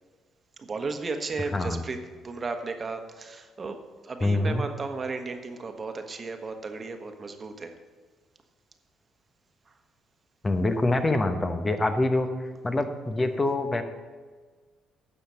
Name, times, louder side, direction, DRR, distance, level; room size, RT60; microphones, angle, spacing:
voice 1, 0.6-2.0 2.2-7.7, right 3 dB, 40° right, 6 dB, 1.2 m, -34 dB
voice 2, 1.5-1.8 4.2-4.6 10.4-12.3 12.6-13.8, left 2 dB, 30° left, 7 dB, 1.0 m, -25 dB
10.0 x 6.7 x 5.6 m, 1.4 s
supercardioid pair, 60°, 0 cm